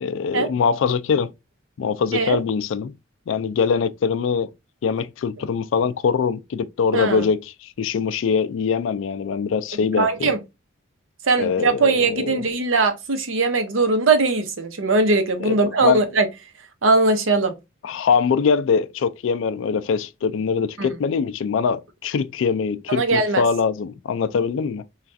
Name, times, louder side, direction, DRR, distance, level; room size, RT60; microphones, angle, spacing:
voice 1, 0.0-1.3 1.8-2.9 3.3-4.5 4.8-10.3 11.4-12.4 15.4-16.0 17.8-24.8, left 6 dB, 75° left, 0.3 m, -23 dB
voice 2, 6.9-7.3 10.0-10.4 11.3-16.3 16.8-17.5 20.8-20.9 22.9-23.4, right 3 dB, 90° right, 0.7 m, -20 dB
3.2 x 2.4 x 2.5 m
head